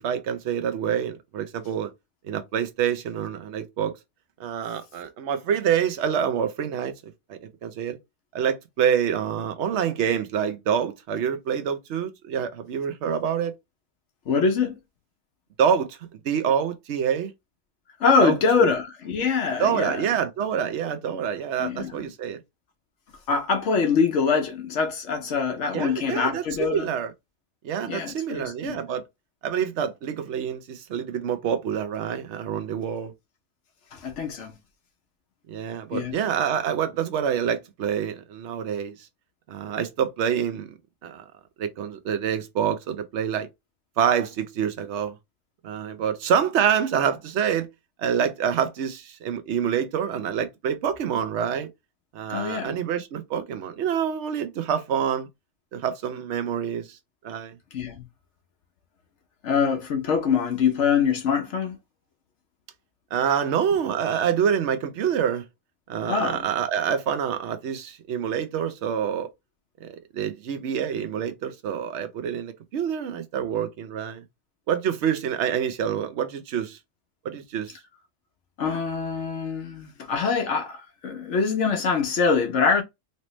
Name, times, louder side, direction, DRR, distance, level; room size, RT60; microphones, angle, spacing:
voice 1, 0.0-1.9 2.2-4.0 4.4-8.0 8.3-13.5 15.6-16.0 16.2-17.3 18.2-18.7 19.6-22.4 25.7-27.1 27.6-29.0 29.4-33.1 35.5-38.9 39.5-40.8 41.0-41.2 41.6-43.5 44.0-45.1 45.6-47.7 48.0-51.7 52.1-55.3 55.7-57.0 57.2-57.5 63.1-65.4 65.9-69.3 69.8-74.2 74.7-76.8 77.2-77.8, right 8 dB, 65° right, 1.0 m, -26 dB
voice 2, 14.3-14.8 18.0-20.0 21.6-22.1 23.3-26.9 27.9-28.8 33.9-34.6 35.9-36.2 52.3-52.8 57.7-58.0 59.4-61.8 66.1-66.5 78.6-82.8, left 5 dB, 70° left, 1.0 m, -24 dB
3.2 x 2.7 x 3.0 m
omnidirectional pair, 1.3 m